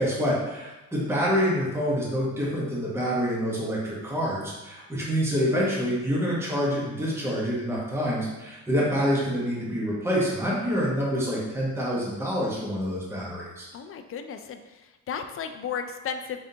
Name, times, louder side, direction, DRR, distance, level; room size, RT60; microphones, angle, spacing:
voice 1, 0.0-13.7, equal, 10° right, -6 dB, 1.1 m, -27 dB
voice 2, 13.7-16.4, left 7 dB, 45° left, 7 dB, 0.4 m, -34 dB
4.0 x 3.3 x 2.8 m, 1.1 s
cardioid pair, 90°, 30 cm